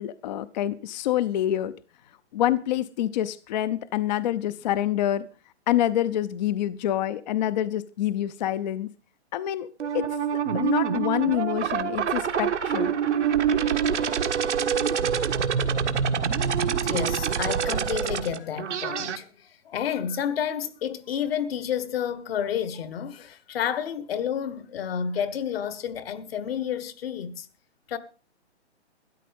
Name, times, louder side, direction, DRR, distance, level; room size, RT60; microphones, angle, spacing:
voice 1, 0.0-1.7 2.3-5.3 5.7-8.9 9.3-9.7 9.9-12.9, left 12 dB, 40° left, 0.6 m, -27 dB
sound 1, 9.8-19.2, right 7 dB, 80° right, 1.5 m, -25 dB
voice 2, 16.8-27.5 27.9-28.0, left 8 dB, 55° left, 1.5 m, -30 dB
13.5 x 10.0 x 5.3 m
hypercardioid pair, 145°, 35 cm